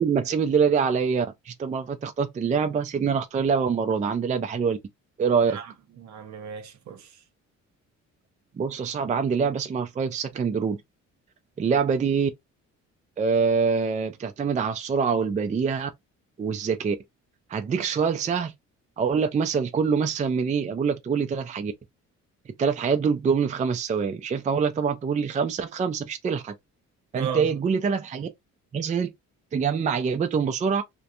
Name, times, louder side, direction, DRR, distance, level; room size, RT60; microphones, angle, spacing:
voice 1, 0.0-4.8 5.2-5.6 8.6-10.8 11.6-12.3 13.2-15.9 16.4-17.0 17.5-18.5 19.0-21.7 22.6-26.5 27.1-28.3 28.7-29.1 29.5-30.8, right 6 dB, 25° right, 0.4 m, -25 dB
voice 2, 5.5-7.2 27.1-27.5, right 7 dB, 65° right, 0.8 m, -36 dB
2.4 x 2.2 x 2.7 m
cardioid pair, 90°, 30 cm